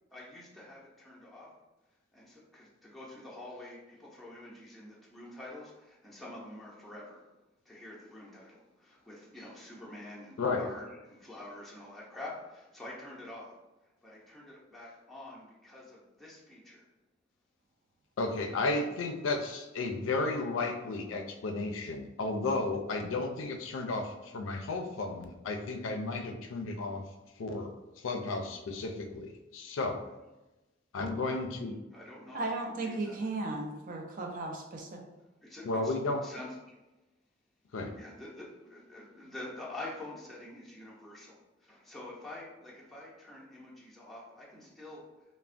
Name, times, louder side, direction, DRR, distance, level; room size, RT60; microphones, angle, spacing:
voice 1, 0.1-1.5 2.1-7.3 7.7-13.5 14.0-16.9 31.2-31.4 31.9-33.3 35.4-36.0 36.2-36.7 37.9-45.1, left 1 dB, ahead, -6 dB, 0.5 m, -47 dB
voice 2, 18.2-27.0 27.4-27.7 28.0-30.0 30.9-31.7 35.6-36.2 37.7-37.9, left 3 dB, 85° left, 4 dB, 0.4 m, -33 dB
voice 3, 32.3-35.0, right 2 dB, 45° right, 2 dB, 0.4 m, -35 dB
3.2 x 2.1 x 2.5 m, 1.0 s
head